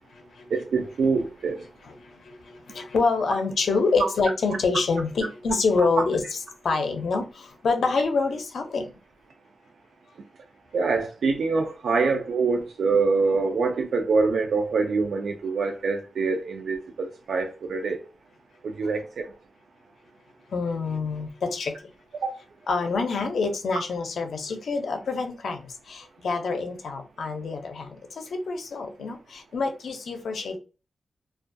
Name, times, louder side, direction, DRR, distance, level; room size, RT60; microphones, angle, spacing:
voice 1, 0.5-1.6 10.7-18.0 18.6-19.3 22.2-22.4, right 4 dB, 80° right, 0.3 m, -25 dB
voice 2, 2.7-6.2 6.6-8.9 20.5-21.7 22.7-25.6 25.9-30.6, left 4 dB, 80° left, 0.5 m, -26 dB
2.3 x 2.2 x 2.5 m
wide cardioid pair, 150°, 0 cm